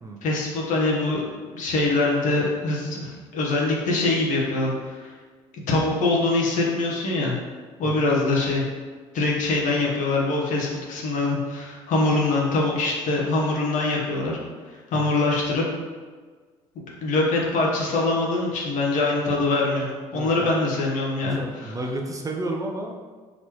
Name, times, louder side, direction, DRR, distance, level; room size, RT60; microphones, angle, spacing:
voice 1, 0.2-1.2 1.5-5.1 5.7-7.3 7.8-8.6 9.1-14.4 14.9-15.6 16.7-19.9 20.1-21.8, left 2 dB, 60° left, -2 dB, 1.1 m, -23 dB
voice 2, 7.8-8.2 14.9-15.3 20.1-20.5 21.4-23.0, right 2 dB, 25° right, 1 dB, 0.5 m, -32 dB
4.0 x 3.0 x 3.0 m, 1.5 s
hypercardioid pair, 70°, 14 cm